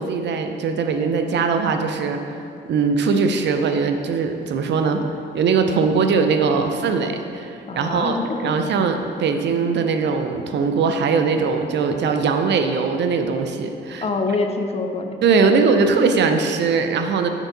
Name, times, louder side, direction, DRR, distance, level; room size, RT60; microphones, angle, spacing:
voice 1, 0.0-2.4 2.7-5.0 5.3-14.0 15.2-17.3, right 5 dB, 60° right, 6 dB, 0.5 m, -20 dB
voice 2, 7.7-8.6 14.0-15.2, left 3 dB, 30° left, 5 dB, 0.5 m, -25 dB
6.9 x 4.5 x 3.9 m, 2.6 s
cardioid pair, 90°, 20 cm